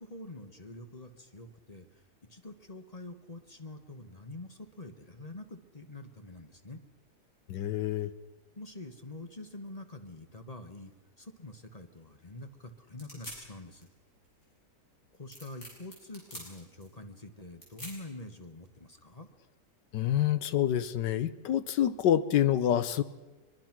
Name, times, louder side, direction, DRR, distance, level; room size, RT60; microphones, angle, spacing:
voice 1, 0.0-2.0 2.3-6.8 8.6-13.9 15.1-19.3, left 2 dB, 25° left, 7 dB, 1.2 m, -46 dB
voice 2, 7.5-8.1 19.9-23.0, left 11 dB, 90° left, 14 dB, 1.5 m, -27 dB
sound 1, 10.9-19.0, equal, 40° left, 7.4 m, -50 dB
23.0 x 23.0 x 6.0 m, 1.2 s
omnidirectional pair, 1.8 m